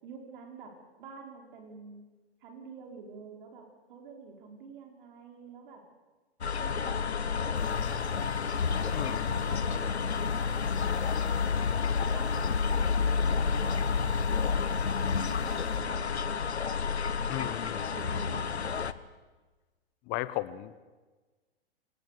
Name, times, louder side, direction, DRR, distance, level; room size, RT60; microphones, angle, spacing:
voice 1, 0.0-2.0 2.4-5.8 6.6-11.7 12.1-14.8 15.1-16.5 17.3-17.6 17.9-18.8, right 4 dB, 55° right, 2 dB, 5.2 m, -48 dB
sound 1, 6.4-18.9, left 5 dB, 85° left, 1.1 m, -30 dB
sound 2, 7.5-15.8, left 7 dB, 55° left, 6.3 m, -44 dB
voice 2, 8.9-9.4 17.3-17.9 20.1-20.8, left 16 dB, 30° left, 16 dB, 1.1 m, -36 dB
27.5 x 19.0 x 6.9 m, 1.3 s
figure-of-eight pair, 115°, 32 cm